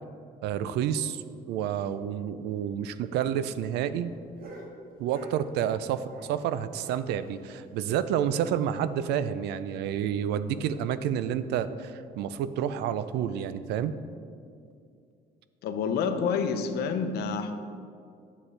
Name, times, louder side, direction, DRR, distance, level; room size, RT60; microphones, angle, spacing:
voice 1, 0.4-4.1 5.0-13.9, right 9 dB, 85° right, 13 dB, 0.4 m, -29 dB
sound 1, 3.0-6.4 6.7-8.7 9.0-9.1 9.4-9.5 9.9-10.0 10.6-10.9 11.7-11.8, right 1 dB, 60° right, 1.5 m, -50 dB
voice 2, 15.6-17.5, left 5 dB, 75° left, 8 dB, 0.7 m, -28 dB
9.6 x 7.4 x 3.3 m, 2.4 s
cardioid pair, 110°, 17 cm